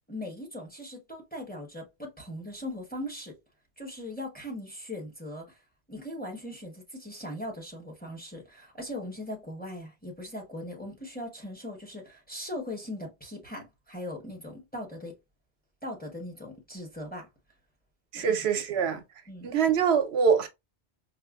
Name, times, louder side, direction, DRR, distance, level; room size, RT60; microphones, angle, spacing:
voice 1, 0.1-3.3 3.8-5.6 5.9-15.1 15.8-17.3 18.2-18.4 18.8-18.9 19.3-19.5, left 1 dB, 10° left, 0.9 m, -39 dB
voice 2, 18.1-19.0 19.4-20.5, right 7 dB, 80° right, 0.9 m, -24 dB
5.1 x 2.0 x 2.3 m
omnidirectional pair, 1.1 m